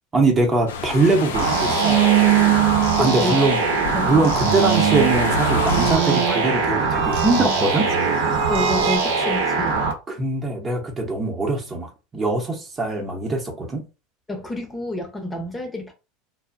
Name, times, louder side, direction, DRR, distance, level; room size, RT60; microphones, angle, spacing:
voice 1, 0.1-2.1 3.0-3.6 4.1-7.9 9.7-13.8, right 3 dB, 25° right, 0.8 m, -22 dB
sound 1, 0.7-6.0, left 5 dB, 75° left, 0.4 m, -29 dB
sound 2, 1.2-3.6 3.9-9.0, right 15 dB, 55° right, 0.3 m, -24 dB
sound 3, 1.3-9.9, right 3 dB, 75° right, 0.8 m, -22 dB
voice 2, 3.0-3.4 3.9-4.1 8.5-9.8 14.3-15.9, left 1 dB, 15° left, 0.7 m, -28 dB
2.5 x 2.0 x 2.4 m
hypercardioid pair, 80°, 0 cm